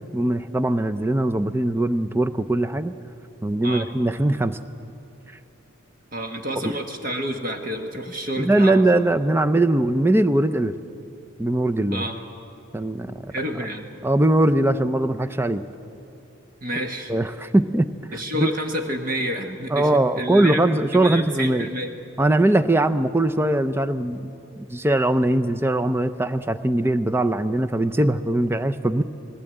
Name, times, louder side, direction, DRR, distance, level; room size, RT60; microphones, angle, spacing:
voice 1, 0.0-2.9 3.4-4.6 6.6-6.7 8.4-10.7 11.4-12.1 12.7-13.3 14.0-15.6 17.1-18.5 19.7-21.7 22.2-29.0, right 1 dB, 10° right, 9 dB, 0.5 m, -21 dB
voice 2, 6.1-8.8 11.9-12.2 13.3-13.9 16.6-17.1 18.1-21.9, equal, 40° right, 4 dB, 1.3 m, -29 dB
19.0 x 16.0 x 8.9 m, 2.9 s
head